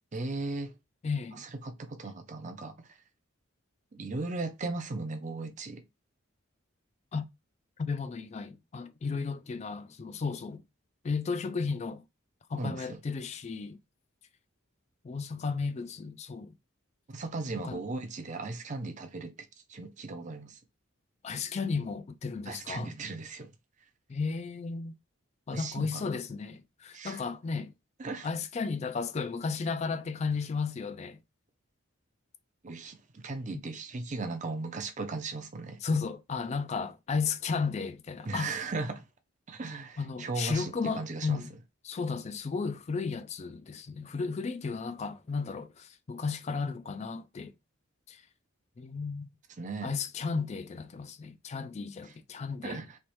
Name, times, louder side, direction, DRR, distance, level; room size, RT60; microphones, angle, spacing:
voice 1, 0.1-0.7 1.4-2.7 3.9-5.8 12.5-13.0 17.1-19.3 19.7-20.6 22.5-23.5 25.5-26.1 26.9-27.2 28.0-28.3 32.6-35.8 38.2-39.0 39.5-41.4 49.6-49.9 52.6-53.0, right 3 dB, 35° right, 0.5 m, -37 dB
voice 2, 1.0-1.4 7.1-7.3 7.8-10.6 11.0-12.0 12.5-13.8 15.0-16.5 17.6-17.8 21.2-22.9 24.1-25.0 25.5-27.7 28.2-31.2 33.5-33.6 35.8-38.5 40.0-41.5 41.8-47.5 48.1-48.2 48.8-49.3 49.8-52.8, left 4 dB, 30° left, 0.3 m, -34 dB
3.2 x 3.0 x 3.0 m
head